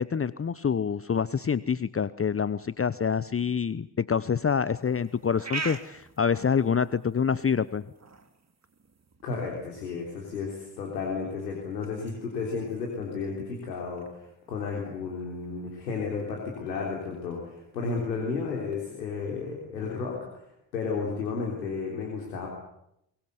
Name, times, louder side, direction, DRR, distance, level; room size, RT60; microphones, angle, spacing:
voice 1, 0.0-7.8, left 6 dB, 25° left, 17 dB, 1.0 m, -26 dB
sound 1, 4.7-18.8, right 4 dB, 30° right, 3.6 m, -46 dB
voice 2, 9.2-20.4 20.7-22.5, left 4 dB, 90° left, -1 dB, 3.6 m, -33 dB
24.0 x 23.0 x 8.3 m, 0.79 s
hypercardioid pair, 45°, 50 cm